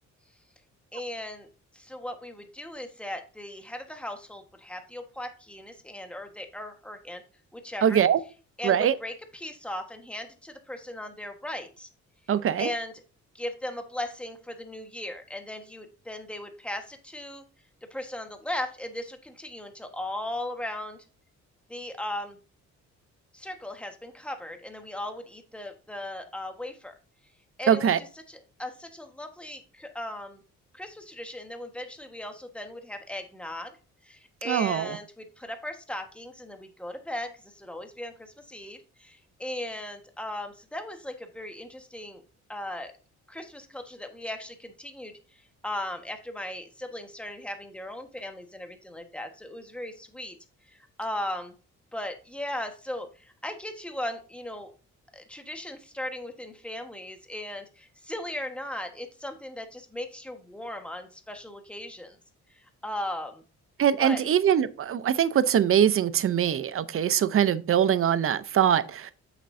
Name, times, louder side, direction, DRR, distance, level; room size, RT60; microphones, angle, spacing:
voice 1, 0.9-1.5 1.7-7.2 7.5-8.0 8.6-11.9 12.6-13.0 13.3-17.4 17.8-21.0 21.7-22.4 23.3-26.9 27.6-30.4 30.7-33.8 34.0-42.2 42.5-42.9 43.3-50.4 50.7-51.6 51.9-54.7 55.1-62.2 62.5-63.4 64.0-64.2, left 1 dB, 5° left, 1.4 m, -37 dB
voice 2, 7.8-8.2 8.6-8.9 12.3-12.7 27.7-28.0 34.5-35.0 63.8-69.1, right 9 dB, 45° right, 0.7 m, -23 dB
8.6 x 6.0 x 2.7 m
cardioid pair, 90°, 30 cm